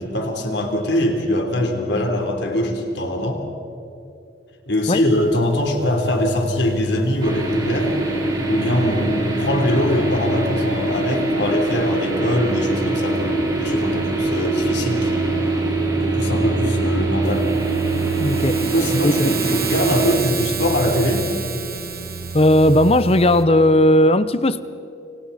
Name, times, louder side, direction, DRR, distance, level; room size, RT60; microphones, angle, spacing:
voice 1, 0.0-3.4 4.7-7.9 8.5-15.4 16.0-17.5 18.6-21.3, left 1 dB, 75° left, 3.6 m, -22 dB
sound 1, 5.1-23.5, right 1 dB, 75° right, 1.6 m, -31 dB
sound 2, 7.2-20.2, right 2 dB, 20° right, 4.2 m, -23 dB
sound 3, 17.2-23.4, right 7 dB, 55° right, 2.1 m, -31 dB
voice 2, 18.2-18.6 19.0-19.3 22.3-24.6, left 1 dB, 35° left, 0.8 m, -16 dB
29.5 x 27.5 x 4.3 m
head